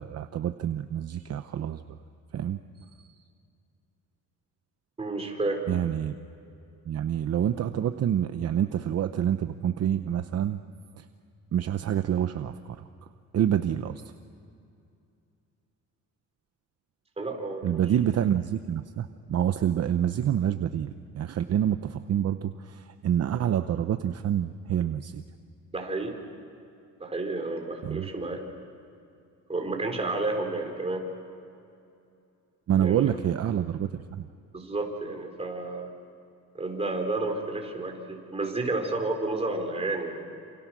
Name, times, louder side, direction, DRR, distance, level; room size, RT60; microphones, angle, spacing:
voice 1, 0.0-1.8 2.3-2.6 3.0-3.1 5.7-6.1 6.9-10.6 11.0-11.1 11.5-12.9 13.3-14.0 17.6-25.2 27.8-28.1 32.7-34.3, right 10 dB, 50° right, 9 dB, 0.8 m, -27 dB
voice 2, 5.0-5.7 17.2-17.8 25.7-26.2 27.0-28.4 29.5-31.1 32.8-33.1 34.5-35.9 36.5-40.2, right 2 dB, 20° right, 1 dB, 4.3 m, -31 dB
28.5 x 28.0 x 6.2 m, 2.6 s
cardioid pair, 135°, 32 cm